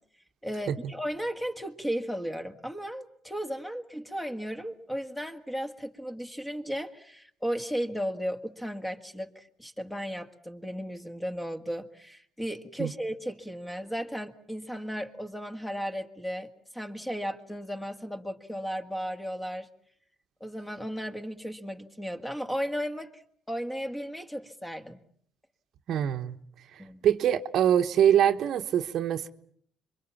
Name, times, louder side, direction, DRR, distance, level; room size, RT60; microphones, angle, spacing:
voice 1, 0.4-19.7 20.4-23.2 23.5-25.0 26.8-27.1, equal, 5° left, 1.9 m, -35 dB
voice 2, 25.9-26.4 27.0-29.3, right 10 dB, 60° right, 1.1 m, -24 dB
26.0 x 23.5 x 7.2 m
cardioid pair, 100°, 0 cm